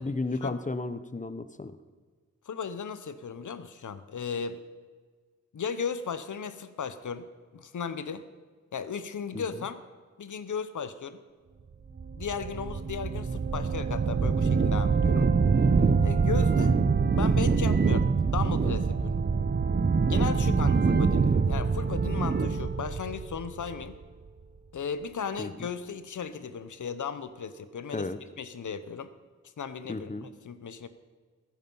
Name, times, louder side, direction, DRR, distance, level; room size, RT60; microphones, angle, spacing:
voice 1, 0.0-1.8 9.3-9.6 20.3-20.6 25.4-25.7 27.9-28.2 29.9-30.3, left 3 dB, 25° left, 12 dB, 0.7 m, -34 dB
voice 2, 2.5-4.6 5.5-7.3 7.5-8.2 8.7-9.8 10.2-11.2 12.1-15.3 16.0-16.8 17.1-19.2 20.1-24.0 24.7-28.1 28.4-29.1 29.6-30.1 30.4-30.9, left 6 dB, 90° left, 12 dB, 0.8 m, -36 dB
sound 1, 12.0-24.0, right 5 dB, 35° right, 0.5 m, -25 dB
15.5 x 9.8 x 5.5 m, 1.5 s
wide cardioid pair, 80°, 29 cm